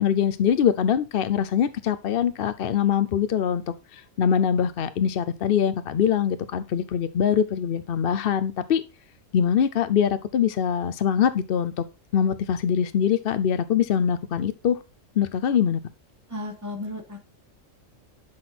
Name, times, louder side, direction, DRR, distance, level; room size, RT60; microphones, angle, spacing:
voice 1, 0.0-8.8 9.3-11.8 12.1-14.8 15.2-15.8, left 8 dB, 55° left, 0.7 m, -23 dB
voice 2, 16.3-17.2, left 1 dB, 15° right, 2.8 m, -34 dB
11.5 x 6.1 x 4.2 m
omnidirectional pair, 1.3 m